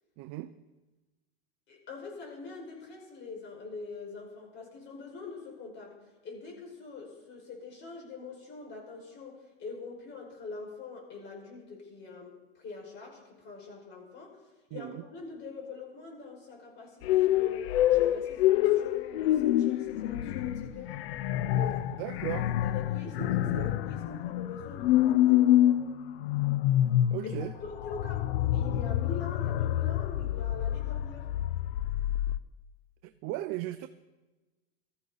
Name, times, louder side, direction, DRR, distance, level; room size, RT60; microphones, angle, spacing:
voice 1, 0.2-0.5 14.7-15.0 22.0-22.5 23.2-23.8 27.1-27.5 33.0-33.9, right 16 dB, 45° right, 0.6 m, -37 dB
voice 2, 1.7-6.0 6.2-14.4 14.7-21.0 21.5-21.8 22.6-25.8 27.2-27.3 27.6-28.2 28.5-31.3, left 4 dB, 35° left, 5.4 m, -44 dB
sound 1, 17.0-32.4, left 13 dB, 70° left, 0.6 m, -27 dB
17.0 x 13.5 x 4.0 m
supercardioid pair, 120°, 31 cm